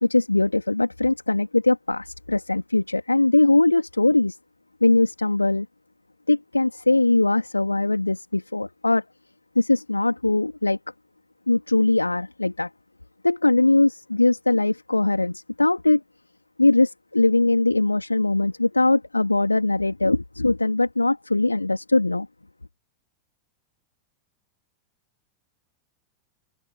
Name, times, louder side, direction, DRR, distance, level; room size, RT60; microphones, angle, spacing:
voice 1, 0.0-4.4 4.8-5.7 6.3-9.0 9.5-10.8 11.5-12.7 13.2-16.0 16.6-22.3, left 2 dB, 85° left, 3.1 m, -21 dB
figure-of-eight pair, 90°, 0 cm